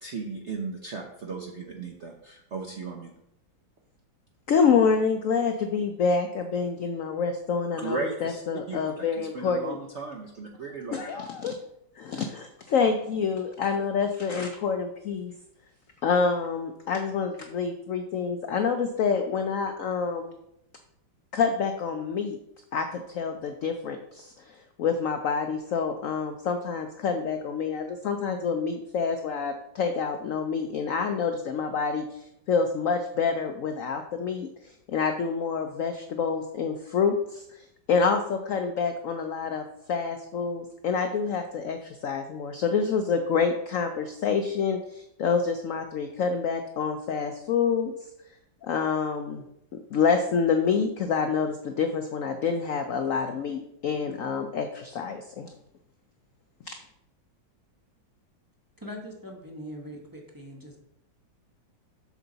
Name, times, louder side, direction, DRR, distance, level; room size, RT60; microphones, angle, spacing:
voice 1, 0.0-3.1 7.8-8.4 8.7-11.3, right 4 dB, 60° right, 1 dB, 0.7 m, -36 dB
voice 2, 4.5-9.8 10.9-11.6 12.0-15.3 16.0-20.4 21.3-22.4 22.7-47.9 48.6-49.4 49.7-55.5 56.7-56.8, left 5 dB, 80° left, 6 dB, 0.7 m, -27 dB
voice 3, 58.8-60.7, equal, 15° right, 0 dB, 0.9 m, -41 dB
7.2 x 6.2 x 4.0 m, 0.79 s
omnidirectional pair, 2.1 m